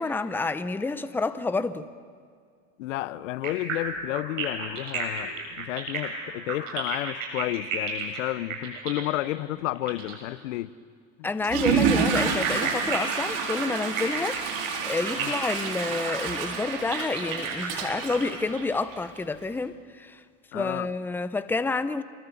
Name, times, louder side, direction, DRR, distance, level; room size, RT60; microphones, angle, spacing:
voice 1, 0.0-1.9 11.2-14.4 14.8-20.2 20.5-22.0, left 3 dB, 5° left, 11 dB, 0.8 m, -29 dB
voice 2, 2.8-10.8 11.2-11.3 15.2-15.3 20.5-20.9, left 16 dB, 70° left, 17 dB, 0.9 m, -31 dB
sound 1, 3.4-10.2 11.4-18.1, right 6 dB, 85° right, 7.4 m, -33 dB
Water / Toilet flush, 11.4-19.2, right 6 dB, 50° right, 4.4 m, -29 dB
28.5 x 23.0 x 7.2 m, 2.1 s
supercardioid pair, 115°, 38 cm